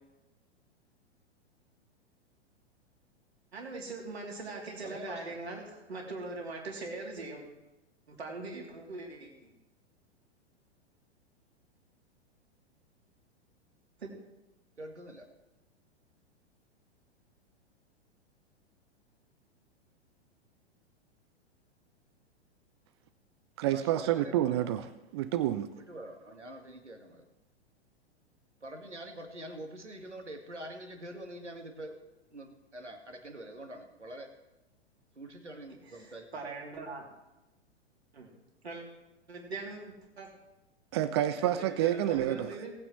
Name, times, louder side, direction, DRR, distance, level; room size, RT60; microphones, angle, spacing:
voice 1, 3.5-7.4 8.1-9.5 14.0-14.2 35.9-37.0 38.1-38.3 38.6-38.8 39.3-40.3 41.4-42.7, right 3 dB, 65° right, -1 dB, 3.0 m, -41 dB
voice 2, 4.8-5.3 14.8-15.3 23.7-24.7 25.8-27.2 28.6-32.0 32.3-34.3 35.2-36.4, right 1 dB, 80° right, 5 dB, 1.8 m, -45 dB
voice 3, 23.6-24.9 25.1-25.7 40.9-42.5, right 12 dB, 25° right, 12 dB, 0.4 m, -28 dB
19.0 x 9.0 x 3.1 m, 0.99 s
figure-of-eight pair, 105°, 34 cm